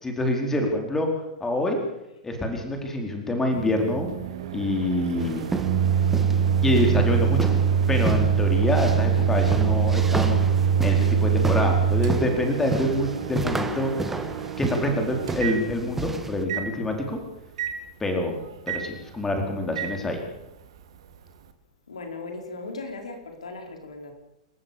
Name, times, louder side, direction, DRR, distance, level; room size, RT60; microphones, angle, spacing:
voice 1, 0.0-1.1 1.4-1.8 2.2-4.1 4.5-5.4 6.6-7.5 7.9-10.4 10.8-13.9 14.6-17.2 18.0-18.4 18.7-20.2, left 1 dB, 10° left, 3 dB, 4.4 m, -26 dB
Microwave oven, 3.5-16.1 16.5-16.7 17.6-17.7 18.7-18.8 19.8-19.9, right 7 dB, 55° right, 2.3 m, -24 dB
sound 1, 5.2-16.4, right 3 dB, 5° right, 1.7 m, -32 dB
voice 2, 21.9-24.1, left 3 dB, 70° left, 4 dB, 4.6 m, -37 dB
28.5 x 15.0 x 7.1 m, 0.89 s
figure-of-eight pair, 105°, 3 cm